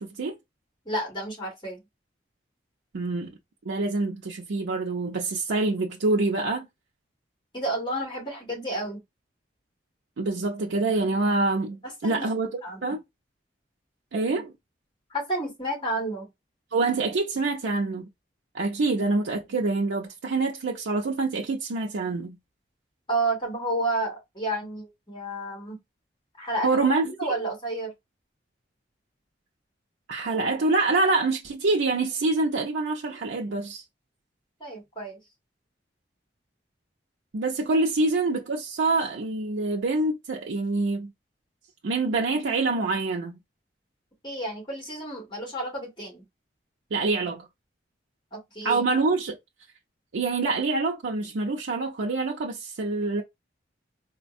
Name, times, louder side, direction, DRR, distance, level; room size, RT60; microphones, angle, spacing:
voice 1, 0.0-0.3 2.9-3.3 3.7-6.7 10.2-12.5 12.8-13.0 14.1-14.5 16.7-18.1 18.5-22.4 26.6-27.3 30.1-33.8 37.3-41.1 41.8-43.4 46.9-47.5 48.6-49.4 50.1-53.2, right 3 dB, 80° right, 0.5 m, -26 dB
voice 2, 0.9-1.8 7.5-9.0 11.8-12.3 12.6-13.0 15.1-16.3 23.1-25.8 26.4-26.7 27.2-27.9 34.6-35.2 44.2-46.2 48.3-48.8, right 1 dB, 25° left, 1.9 m, -31 dB
4.1 x 2.1 x 2.5 m
head